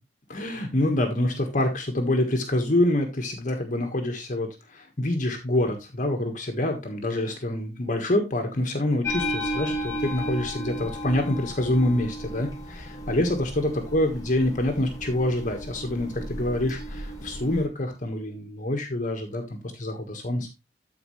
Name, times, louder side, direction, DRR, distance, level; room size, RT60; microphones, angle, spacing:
voice 1, 0.3-20.5, left 1 dB, 45° left, 4 dB, 1.4 m, -26 dB
sound 1, 9.0-17.7, equal, 20° left, 2.0 m, -34 dB
13.0 x 4.7 x 3.1 m, 0.24 s
head